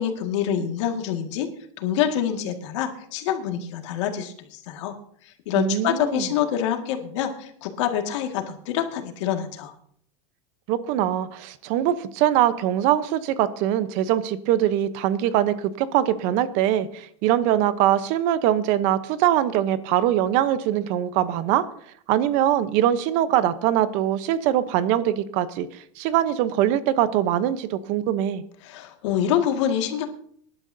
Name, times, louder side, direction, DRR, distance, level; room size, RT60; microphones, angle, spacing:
voice 1, 0.0-1.5 1.8-4.9 5.5-9.7 28.6-30.1, left 9 dB, 75° left, 4 dB, 2.0 m, -26 dB
voice 2, 5.6-6.3 10.7-21.6 22.1-28.4, right 11 dB, 55° right, 13 dB, 0.9 m, -22 dB
22.5 x 11.5 x 2.8 m, 0.63 s
supercardioid pair, 140°, 15 cm